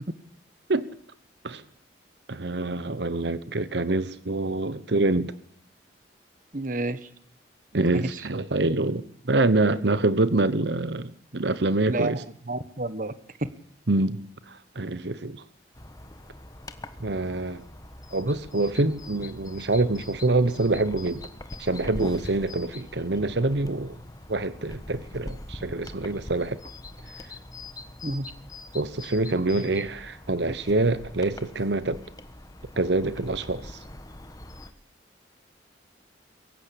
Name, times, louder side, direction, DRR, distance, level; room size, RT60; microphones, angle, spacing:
voice 1, 2.3-5.3 7.7-12.2 13.9-15.4 17.0-17.6 18.1-21.2 21.6-24.0 24.3-26.6 28.7-32.0 32.8-33.8, right 2 dB, 70° right, 1.1 m, -26 dB
voice 2, 6.5-7.1 7.7-7.8 8.1-8.3 11.9-13.1 28.0-28.3, right 2 dB, 45° right, 1.2 m, -30 dB
sound 1, 15.7-34.7, left 1 dB, 20° left, 1.3 m, -42 dB
23.0 x 15.0 x 8.7 m
head